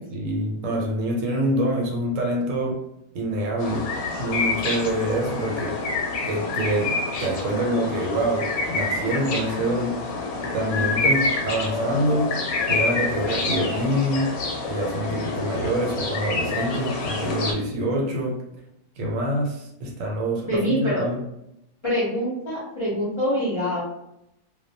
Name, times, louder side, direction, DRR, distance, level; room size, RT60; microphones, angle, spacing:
voice 1, 0.1-2.8 3.1-3.9 4.2-5.8 6.2-10.0 10.5-12.3 12.7-14.3 14.7-18.4 19.0-21.2, right 1 dB, 75° right, 0 dB, 1.0 m, -26 dB
sound 1, 3.6-17.5, left 3 dB, 90° left, 1.1 m, -27 dB
voice 2, 20.5-21.1 21.8-23.8, equal, 35° left, -7 dB, 0.5 m, -25 dB
2.2 x 2.2 x 2.6 m, 0.82 s
omnidirectional pair, 1.5 m